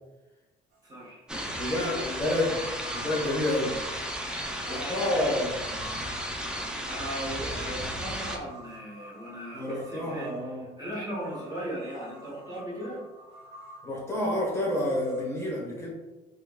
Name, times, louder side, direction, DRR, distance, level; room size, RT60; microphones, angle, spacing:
sound 1, 0.7-0.8 1.4-15.2, equal, 70° right, 0.9 m, -49 dB
voice 1, 0.8-1.2 1.6-2.4 4.6-5.4 6.5-13.0, equal, 20° right, -6 dB, 1.1 m, -38 dB
sound 2, 1.3-8.4, equal, 5° right, 0.4 m, -34 dB
voice 2, 1.6-2.6 2.9-3.8 4.7-5.9 9.5-10.7 13.8-15.9, left 1 dB, 15° left, -5 dB, 1.2 m, -29 dB
4.4 x 2.3 x 2.3 m, 1.1 s
cardioid pair, 110°, 17 cm